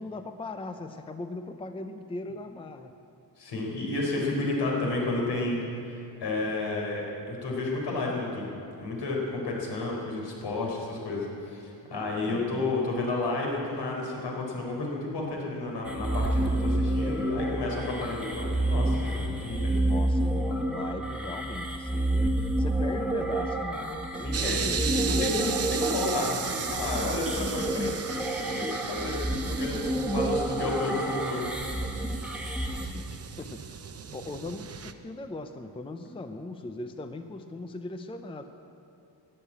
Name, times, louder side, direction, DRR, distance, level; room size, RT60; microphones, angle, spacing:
voice 1, 0.0-2.9 12.2-12.7 19.7-24.9 32.8-33.8 34.1-38.4, left 2 dB, 15° left, 7 dB, 0.5 m, -39 dB
voice 2, 3.4-8.5 8.8-9.2 9.4-19.7 24.2-31.4, left 2 dB, 75° left, -2 dB, 4.3 m, -31 dB
sound 1, 15.9-32.9, right 1 dB, 5° right, 1.5 m, -29 dB
sound 2, 24.3-34.9, right 7 dB, 35° right, 0.7 m, -36 dB
15.0 x 10.5 x 8.7 m, 2.8 s
wide cardioid pair, 155°, 41 cm